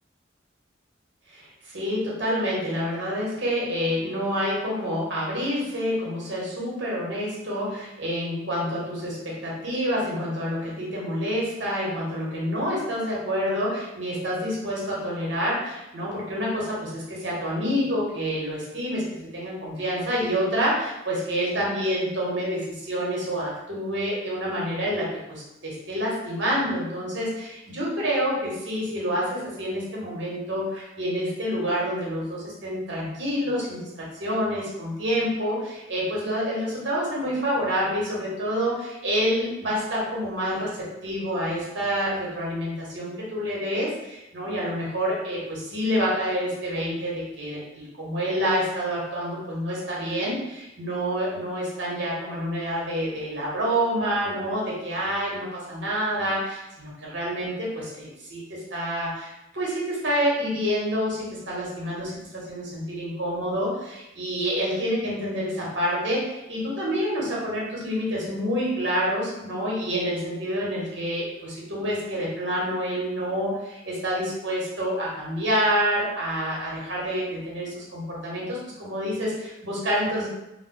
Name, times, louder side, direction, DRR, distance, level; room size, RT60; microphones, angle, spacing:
voice 1, 1.3-80.3, equal, 65° right, -5 dB, 0.9 m, -28 dB
2.1 x 2.1 x 3.6 m, 0.94 s
head